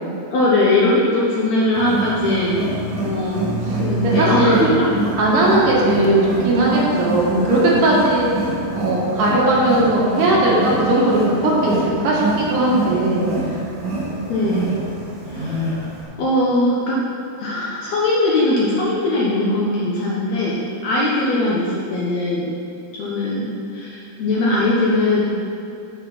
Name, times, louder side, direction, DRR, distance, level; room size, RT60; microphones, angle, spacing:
voice 1, 0.2-2.7 3.0-4.9 14.3-14.7 15.3-15.8 16.2-17.0 17.4-22.5 23.0-25.2, left 1 dB, 65° left, -6 dB, 1.9 m, -20 dB
Wild animals, 1.7-16.0, right 2 dB, 45° right, 1.8 m, -26 dB
voice 2, 3.6-4.6 5.1-13.6, right 1 dB, 65° right, -5 dB, 2.9 m, -18 dB
8.1 x 5.9 x 5.5 m, 2.5 s
omnidirectional pair, 4.1 m